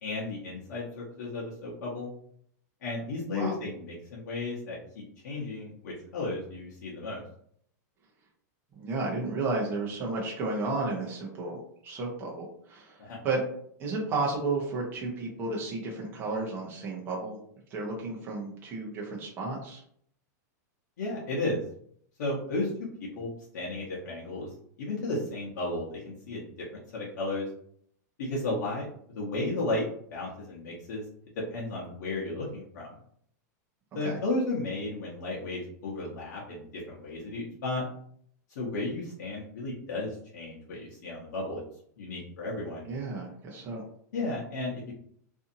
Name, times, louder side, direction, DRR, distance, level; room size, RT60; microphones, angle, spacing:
voice 1, 0.0-2.1 2.8-4.8 5.2-7.2 13.0-13.2 21.0-21.6 22.2-22.7 23.0-24.5 24.8-26.6 26.9-27.5 28.2-28.9 29.1-31.0 31.5-33.0 33.9-37.8 38.5-41.6 42.0-42.9 44.1-44.9, left 2 dB, 75° left, -5 dB, 0.9 m, -34 dB
voice 2, 8.7-13.4 13.8-17.4 17.7-19.8 34.0-34.2 42.9-43.8, right 3 dB, 20° right, -2 dB, 0.7 m, -33 dB
2.6 x 2.6 x 2.5 m, 0.65 s
supercardioid pair, 160°, 10 cm